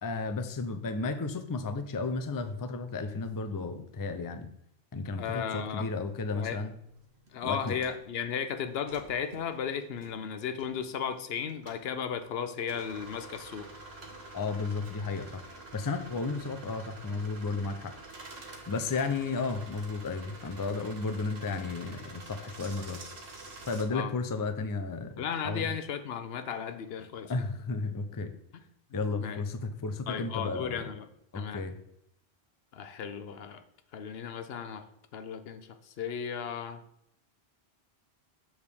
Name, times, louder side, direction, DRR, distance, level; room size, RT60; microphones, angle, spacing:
voice 1, 0.0-4.5 4.9-6.7 7.4-7.8 14.3-15.4 15.7-17.9 18.4-23.0 23.7-25.7 27.3-28.3 28.9-30.8 31.3-31.8, left 4 dB, 30° left, 8 dB, 0.4 m, -33 dB
voice 2, 5.1-5.9 6.3-6.6 7.3-13.7 23.9-24.1 25.2-27.5 28.5-28.6 29.2-29.4 30.1-31.1 31.3-31.7 32.7-33.6 33.9-34.9 35.1-36.8, left 7 dB, 75° left, 10 dB, 0.9 m, -35 dB
sound 1, 6.1-23.9, right 2 dB, 75° right, 1.4 m, -48 dB
7.3 x 6.3 x 3.5 m, 0.77 s
omnidirectional pair, 1.1 m